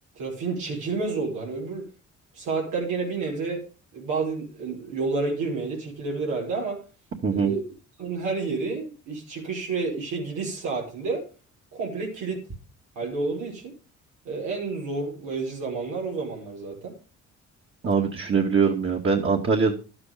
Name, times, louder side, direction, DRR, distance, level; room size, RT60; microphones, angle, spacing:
voice 1, 0.2-1.9 2.3-3.6 3.9-6.8 7.3-7.6 8.0-11.2 11.7-12.4 13.0-13.7 14.2-16.9, right 4 dB, 90° right, -2 dB, 5.4 m, -30 dB
voice 2, 7.2-7.5 17.8-19.7, right 5 dB, 40° right, 1 dB, 2.3 m, -22 dB
12.5 x 8.8 x 5.2 m, 0.34 s
cardioid pair, 90°, 30 cm